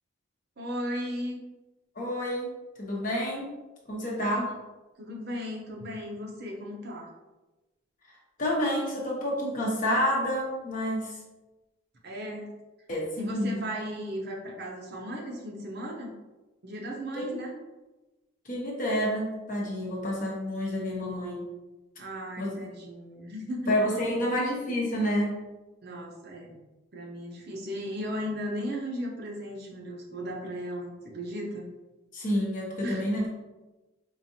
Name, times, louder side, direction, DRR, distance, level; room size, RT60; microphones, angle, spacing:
voice 1, 0.6-1.4 4.2-4.5 5.0-7.1 12.0-12.5 13.2-16.1 16.6-17.5 22.0-24.1 25.8-26.6 26.9-31.7 32.8-33.1, equal, 55° right, -1 dB, 0.7 m, -36 dB
voice 2, 1.9-3.6 3.9-4.5 8.4-11.2 12.9-13.6 17.1-17.4 18.4-21.5 22.4-22.6 23.7-25.4 32.1-33.3, equal, 40° left, -3 dB, 1.0 m, -29 dB
4.7 x 2.4 x 2.7 m, 1.1 s
head